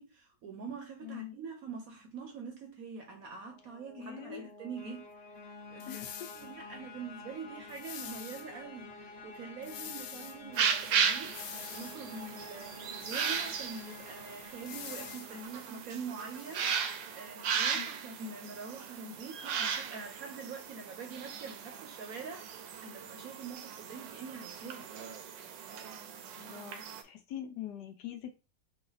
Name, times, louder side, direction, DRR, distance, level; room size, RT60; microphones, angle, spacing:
voice 1, 0.0-6.1 6.3-24.9, right 5 dB, 60° right, 1.0 m, -45 dB
voice 2, 1.0-1.3 4.0-4.5 5.9-6.2 17.7-17.9 26.4-28.3, left 10 dB, 70° left, 1.2 m, -43 dB
sound 1, 3.3-16.3, left 3 dB, 55° left, 0.7 m, -50 dB
sound 2, 5.8-6.5 7.7-8.5 9.6-10.4 11.2-12.0 13.0-13.7 14.7-15.3 16.2-16.9, left 9 dB, 90° left, 1.4 m, -46 dB
sound 3, 10.5-27.0, right 7 dB, 75° right, 1.3 m, -36 dB
4.5 x 2.3 x 3.9 m
omnidirectional pair, 2.0 m